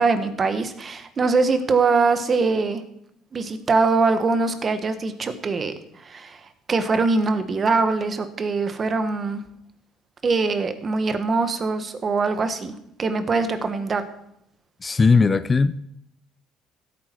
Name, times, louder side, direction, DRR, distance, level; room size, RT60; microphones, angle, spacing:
voice 1, 0.0-2.8 3.3-5.7 6.0-9.4 10.2-12.7 13.0-14.0, right 4 dB, 30° right, 1.3 m, -22 dB
voice 2, 14.8-15.8, left 4 dB, 20° left, 0.4 m, -18 dB
15.5 x 9.1 x 4.5 m
cardioid pair, 135°, 0 cm